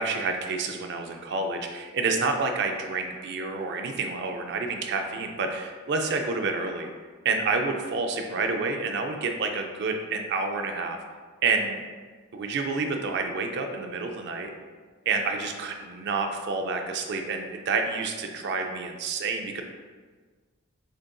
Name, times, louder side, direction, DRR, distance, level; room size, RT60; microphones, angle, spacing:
voice 1, 0.0-6.9 7.2-11.0 11.4-11.8 12.3-14.5 15.1-19.6, right 4 dB, 50° right, 4 dB, 0.4 m, -29 dB
6.3 x 2.5 x 2.2 m, 1.4 s
head